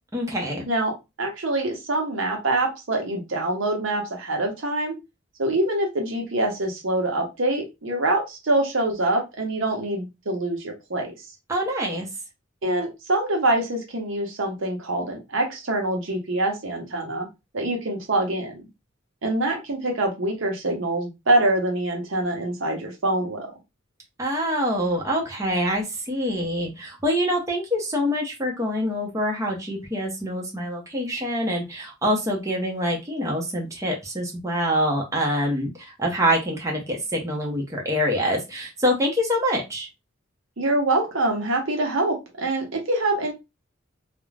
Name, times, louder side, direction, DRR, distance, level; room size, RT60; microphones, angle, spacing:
voice 1, 0.1-0.7 11.5-12.1 24.2-39.9, equal, 15° right, -1 dB, 0.7 m, -25 dB
voice 2, 0.7-5.0 5.4-11.1 12.6-17.3 17.5-18.6 19.2-23.5 40.6-43.3, right 2 dB, 70° right, 2 dB, 0.9 m, -25 dB
2.4 x 2.1 x 3.2 m, 0.24 s
head